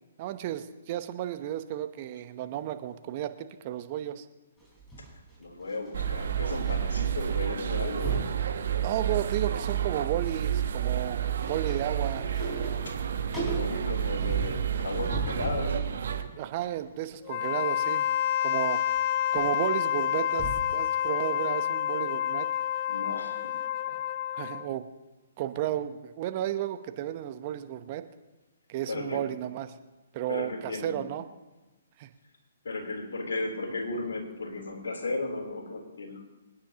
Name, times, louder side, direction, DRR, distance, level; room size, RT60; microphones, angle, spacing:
voice 1, 0.2-4.3 8.8-12.8 16.4-18.1 18.4-18.8 19.3-22.5 24.3-24.8 25.4-28.0 28.7-29.7 30.1-31.3 32.0-32.1, right 12 dB, 40° right, 10 dB, 0.9 m, -33 dB
sound 1, 4.6-6.8 7.0-7.3 7.6-8.4 8.9-9.6 9.9-15.7 16.2-20.8 21.2-21.3, right 2 dB, 5° left, 5.0 m, -39 dB
voice 2, 5.4-8.3 12.9-13.0 13.2-15.9 22.9-23.9 28.9-29.2 30.3-31.1 32.6-36.2, left 2 dB, 70° left, 1 dB, 3.6 m, -35 dB
sound 2, 5.9-16.2, right 9 dB, 65° right, 1.3 m, -30 dB
Wind instrument woodwind instrument, 17.2-24.7, left 11 dB, 40° left, 0.4 m, -29 dB
25.5 x 10.0 x 3.0 m, 1.2 s
figure-of-eight pair, 130°, 0 cm